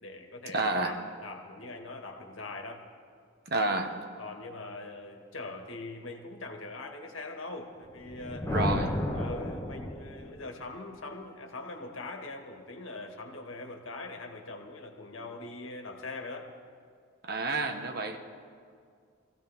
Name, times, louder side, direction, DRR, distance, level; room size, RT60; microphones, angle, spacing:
voice 1, 0.0-2.8 4.2-8.5 9.1-16.5 17.5-17.7, left 2 dB, 75° left, 3 dB, 1.9 m, -42 dB
voice 2, 0.5-0.9 3.5-4.0 8.5-8.9 17.2-18.2, right 2 dB, 50° right, 5 dB, 1.3 m, -29 dB
Thunder, 8.0-10.4, left 1 dB, 15° left, 1.4 m, -32 dB
24.0 x 16.0 x 3.6 m, 2.2 s
head